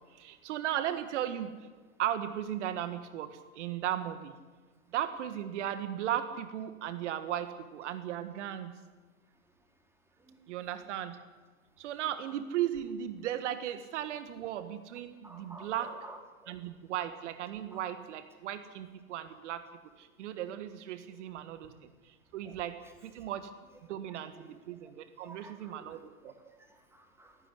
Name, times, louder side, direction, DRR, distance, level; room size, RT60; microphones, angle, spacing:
voice 1, 0.1-1.5 2.0-4.3 4.9-8.7 10.5-11.2 11.8-15.9 16.5-19.6 20.0-21.7 22.1-22.7 23.0-23.5 23.9-26.3, right 11 dB, 60° right, 11 dB, 1.7 m, -36 dB
voice 2, 15.2-16.6 17.7-17.8 22.4-22.6 22.8-22.9 24.1-24.9 25.2-26.0 26.2-27.4, right 1 dB, 5° right, 4 dB, 3.4 m, -52 dB
18.0 x 16.5 x 9.9 m, 1.4 s
hypercardioid pair, 120°, 41 cm